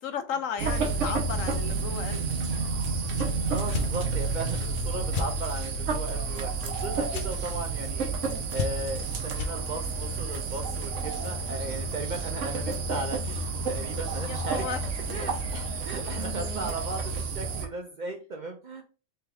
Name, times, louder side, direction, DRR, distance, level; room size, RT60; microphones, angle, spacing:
voice 1, 0.0-2.7 4.7-4.9 14.3-15.2, left 7 dB, 85° left, 9 dB, 1.1 m, -35 dB
sound 1, 0.6-17.7, right 3 dB, 75° right, 1.1 m, -30 dB
sound 2, 3.1-3.3 3.7-3.9 5.1-5.3 7.1-7.3 8.5-9.0 9.3-9.5, left 5 dB, 60° left, 0.5 m, -31 dB
voice 2, 3.5-13.4 13.7-14.7 15.1-18.8, right 2 dB, 55° right, 3 dB, 0.5 m, -36 dB
3.5 x 3.4 x 3.3 m, 0.35 s
omnidirectional pair, 1.3 m